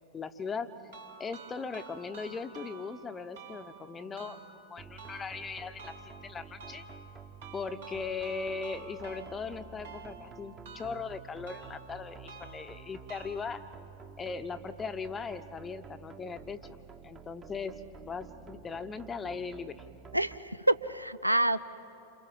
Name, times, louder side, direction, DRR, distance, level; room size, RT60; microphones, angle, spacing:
voice 1, 0.1-0.7 1.2-6.8 7.5-13.6 14.2-16.8 17.0-17.8 18.1-19.8, left 5 dB, 20° left, 10 dB, 1.0 m, -39 dB
sound 1, 0.9-13.9, right 4 dB, 60° right, 2.4 m, -51 dB
sound 2, 4.8-20.4, right 5 dB, 25° right, 1.5 m, -50 dB
voice 2, 20.1-21.6, right 1 dB, 90° right, 15 dB, 0.5 m, -27 dB
29.0 x 28.0 x 5.8 m, 2.9 s
figure-of-eight pair, 90°, 0 cm